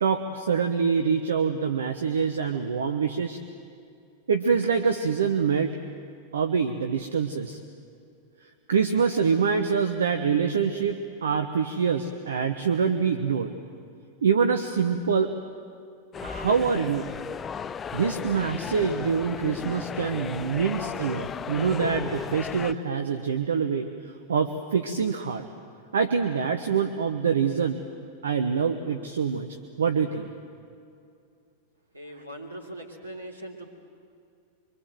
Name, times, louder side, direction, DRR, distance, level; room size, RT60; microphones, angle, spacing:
voice 1, 0.0-3.4 4.3-5.8 6.3-7.6 8.7-13.5 14.2-15.3 16.2-17.1 17.9-25.5 25.9-27.8 28.2-30.3, right 6 dB, 65° right, 7 dB, 1.1 m, -25 dB
sound 1, 16.1-22.7, left 7 dB, 20° left, 0.5 m, -35 dB
voice 2, 31.9-33.7, right 1 dB, 85° right, 1 dB, 3.2 m, -40 dB
25.0 x 24.5 x 7.8 m, 2.4 s
figure-of-eight pair, 90°, 0 cm